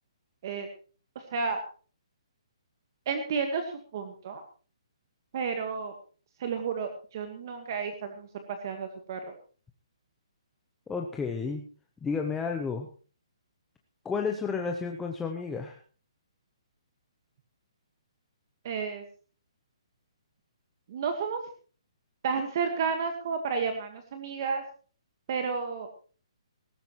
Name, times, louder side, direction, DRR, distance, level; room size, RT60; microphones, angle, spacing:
voice 1, 1.1-1.6 3.0-4.4 5.3-5.9 6.4-9.3 18.6-19.0 20.9-21.4 22.2-24.6 25.3-25.9, right 5 dB, 35° right, 6 dB, 1.6 m, -32 dB
voice 2, 10.9-11.6 12.0-12.9 14.0-15.8, left 5 dB, 5° left, 2 dB, 0.7 m, -31 dB
17.5 x 15.0 x 3.1 m, 0.39 s
hypercardioid pair, 170°, 3 cm